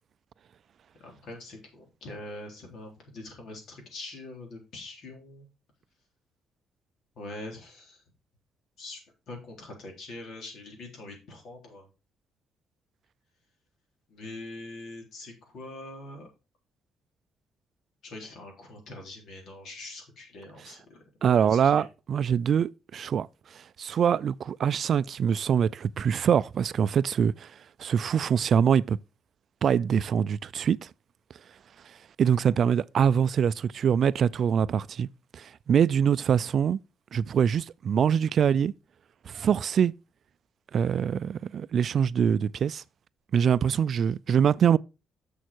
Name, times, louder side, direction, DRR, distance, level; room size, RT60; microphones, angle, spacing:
voice 1, 1.0-5.5 7.2-8.0 8.8-9.0 9.3-11.9 14.1-16.3 18.0-21.9, left 2 dB, 75° left, 3.7 m, -43 dB
voice 2, 21.2-23.3 23.5-27.5 27.8-29.0 29.6-30.9 32.2-35.1 35.3-36.8 37.1-38.7 39.3-39.9 40.7-42.8 43.3-44.8, right 8 dB, 60° right, 0.3 m, -24 dB
7.1 x 6.5 x 4.5 m
cardioid pair, 90°, 0 cm